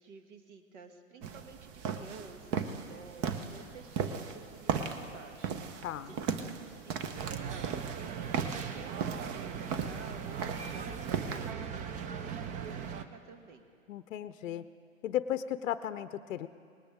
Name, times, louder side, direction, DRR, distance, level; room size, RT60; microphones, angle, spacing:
voice 1, 0.0-7.7 8.0-13.6, right 5 dB, 60° right, 7 dB, 1.6 m, -52 dB
sound 1, 1.2-11.5, right 6 dB, 35° right, 1.0 m, -37 dB
sound 2, 7.2-13.0, right 7 dB, 20° right, 0.5 m, -39 dB
voice 2, 13.9-14.6 15.0-16.5, left 11 dB, 75° left, 13 dB, 0.6 m, -35 dB
19.5 x 18.0 x 3.6 m, 2.3 s
hypercardioid pair, 115°, 39 cm